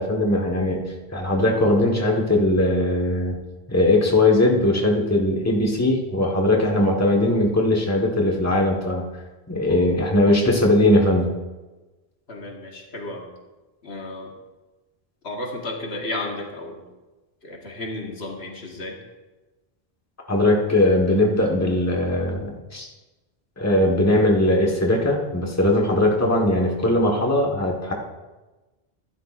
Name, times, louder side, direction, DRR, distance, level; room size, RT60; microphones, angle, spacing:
voice 1, 0.0-3.3 3.7-9.0 9.5-11.3 20.3-22.9 23.6-27.9, left 1 dB, 15° left, 0 dB, 1.4 m, -20 dB
voice 2, 12.3-13.2 13.8-14.3 15.2-16.9 17.4-19.0, left 2 dB, 80° left, 0 dB, 1.8 m, -33 dB
14.0 x 11.5 x 2.5 m, 1.2 s
omnidirectional pair, 1.1 m